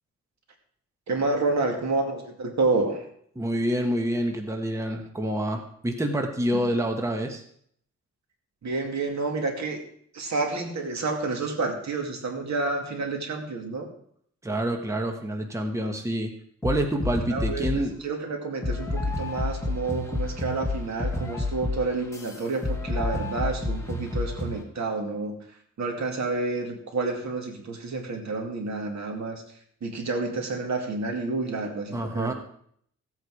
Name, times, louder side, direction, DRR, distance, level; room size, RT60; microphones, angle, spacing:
voice 1, 1.1-3.0 8.6-9.8 10.1-13.9 17.3-25.3 25.8-29.4 29.8-32.3, right 3 dB, 70° right, 2 dB, 2.3 m, -29 dB
voice 2, 3.4-7.4 14.4-16.3 16.6-18.0 31.9-32.3, right 1 dB, 10° right, 3 dB, 1.2 m, -27 dB
sound 1, 16.6-17.9 18.6-24.6, left 2 dB, 10° left, 1.9 m, -30 dB
15.5 x 8.2 x 4.8 m, 0.65 s
wide cardioid pair, 140°, 29 cm